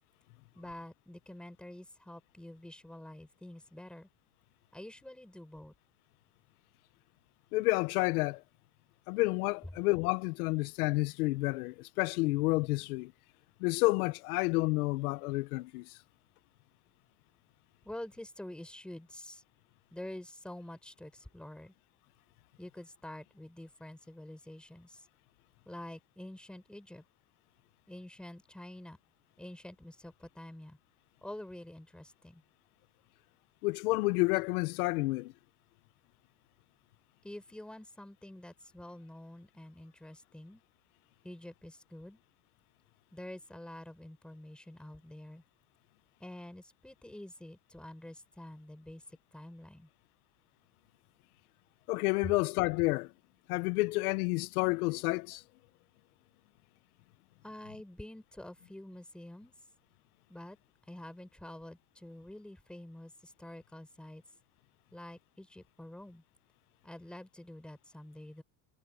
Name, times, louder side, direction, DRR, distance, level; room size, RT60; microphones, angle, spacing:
voice 1, 0.5-4.1 4.7-5.7 17.8-19.4 19.9-21.7 22.6-25.1 25.6-27.0 27.9-29.0 29.4-30.8 31.2-32.4 37.2-40.6 41.2-42.2 43.1-45.4 46.2-49.9 57.4-59.5 60.3-60.6 60.9-64.2 64.9-66.2 66.8-68.4, left 1 dB, ahead, 4.7 m, -47 dB
voice 2, 7.5-8.4 9.1-13.1 13.6-15.9 33.6-35.3 51.9-53.1 53.5-55.4, left 23 dB, 75° left, 0.9 m, -30 dB
cardioid pair, 175°, 45 cm